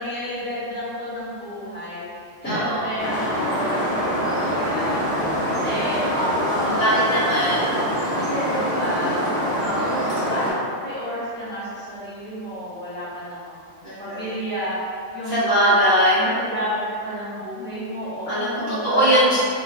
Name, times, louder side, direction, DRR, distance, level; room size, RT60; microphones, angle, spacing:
voice 1, 0.0-5.0 5.4-6.1 6.4-6.8 8.1-9.2 9.6-14.8 15.1-15.8 16.1-19.4, equal, 10° left, -12 dB, 1.2 m, -31 dB
voice 2, 2.4-2.9 6.7-7.7 13.8-14.2 15.3-16.2 18.3-19.4, equal, 55° left, -12 dB, 1.8 m, -20 dB
sound 1, 3.0-10.5, equal, 25° left, 1.0 m, -24 dB
3.2 x 2.6 x 3.9 m, 2.3 s
omnidirectional pair, 1.3 m